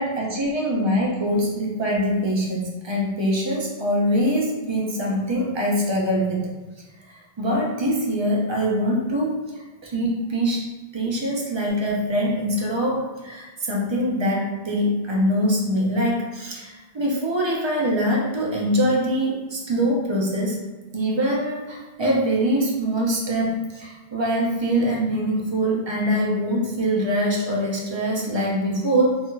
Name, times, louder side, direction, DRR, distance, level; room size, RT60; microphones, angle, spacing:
voice 1, 0.0-6.5 7.1-10.6 10.9-20.6 20.9-29.2, equal, 35° right, -2 dB, 0.5 m, -23 dB
3.2 x 2.9 x 2.2 m, 1.2 s
omnidirectional pair, 1.0 m